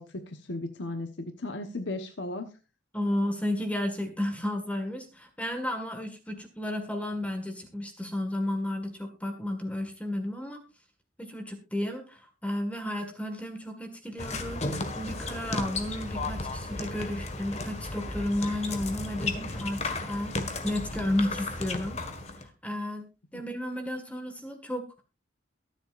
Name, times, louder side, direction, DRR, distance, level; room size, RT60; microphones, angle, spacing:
voice 1, 0.0-2.5, left 2 dB, 70° left, 6 dB, 1.2 m, -36 dB
voice 2, 2.9-10.6 11.2-22.0 22.4-25.0, left 1 dB, 5° left, 6 dB, 1.7 m, -33 dB
sound 1, 14.2-22.5, left 2 dB, 35° left, 1.6 m, -34 dB
23.0 x 7.9 x 2.5 m, 0.29 s
head